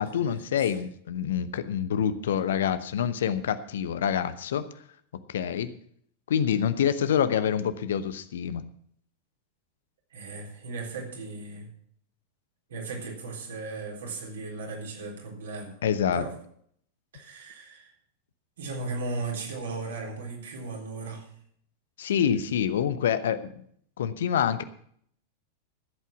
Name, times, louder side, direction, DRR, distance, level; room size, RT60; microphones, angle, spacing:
voice 1, 0.0-4.7 5.3-5.7 6.3-8.6 15.8-16.3 22.0-23.6 24.0-24.6, left 8 dB, 60° left, 13 dB, 0.8 m, -26 dB
voice 2, 10.1-11.7 12.7-15.8 16.1-16.3 17.1-17.9 18.6-21.3, right 3 dB, 65° right, 1 dB, 3.8 m, -36 dB
14.5 x 8.4 x 6.0 m, 0.63 s
figure-of-eight pair, 90°, 0 cm